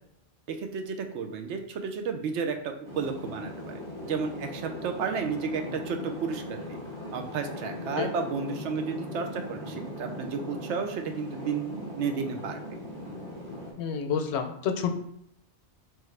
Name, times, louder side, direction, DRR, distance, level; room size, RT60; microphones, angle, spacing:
voice 1, 0.5-6.8 7.1-12.6, right 5 dB, 85° right, 5 dB, 0.9 m, -32 dB
sound 1, 2.8-13.7, left 1 dB, 25° right, 0.9 m, -39 dB
voice 2, 13.8-14.9, left 7 dB, 75° left, 6 dB, 0.8 m, -29 dB
3.6 x 3.1 x 3.2 m, 0.76 s
omnidirectional pair, 1.2 m